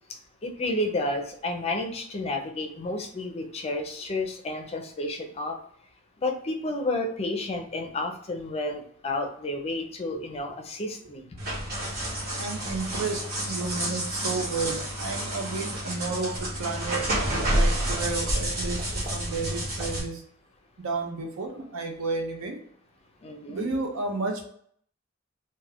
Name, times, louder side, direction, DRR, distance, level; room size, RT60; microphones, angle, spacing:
voice 1, 0.4-5.6 6.2-11.2 16.9-17.0 23.2-23.7, left 2 dB, 30° left, 5 dB, 0.4 m, -31 dB
sound 1, 11.4-20.0, right 1 dB, 50° right, 1.0 m, -29 dB
voice 2, 12.4-20.2 20.8-22.6 23.5-24.5, right 3 dB, 80° right, 3 dB, 0.6 m, -32 dB
2.3 x 2.2 x 3.3 m, 0.62 s
head